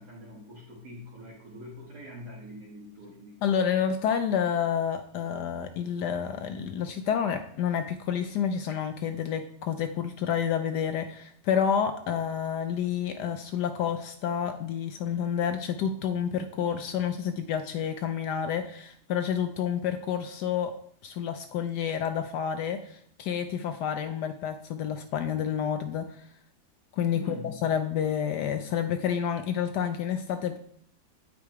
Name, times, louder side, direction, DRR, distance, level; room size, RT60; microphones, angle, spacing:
voice 1, 0.0-3.4 27.1-27.6, left 1 dB, 60° right, -5 dB, 1.9 m, -44 dB
voice 2, 3.4-20.7 21.0-26.2 26.9-30.6, left 8 dB, 75° left, 7 dB, 1.1 m, -29 dB
8.4 x 3.9 x 4.6 m, 0.64 s
omnidirectional pair, 1.9 m